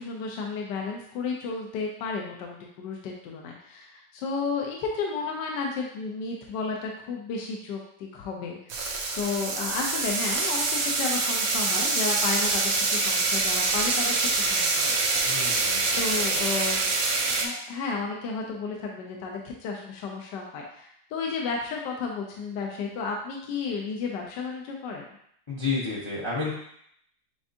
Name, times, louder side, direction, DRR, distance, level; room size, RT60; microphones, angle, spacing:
voice 1, 0.0-15.0 15.6-16.9 17.2-25.1, left 4 dB, 75° left, 0 dB, 1.2 m, -33 dB
sound 1, 8.7-17.5, right 3 dB, 65° right, 0.8 m, -25 dB
voice 2, 15.2-16.0 25.5-26.5, left 4 dB, 50° left, -7 dB, 0.3 m, -30 dB
6.9 x 2.5 x 2.6 m, 0.70 s
omnidirectional pair, 2.0 m